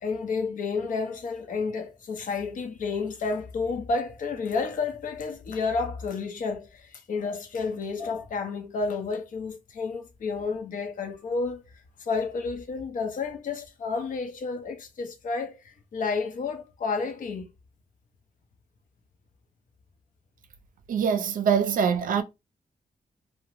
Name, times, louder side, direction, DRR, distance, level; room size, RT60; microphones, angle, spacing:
voice 1, 0.0-11.6 12.0-17.5, left 4 dB, 70° left, 0.7 m, -31 dB
voice 2, 20.9-22.2, right 7 dB, 75° right, 0.5 m, -24 dB
2.4 x 2.1 x 2.9 m
wide cardioid pair, 120°, 14 cm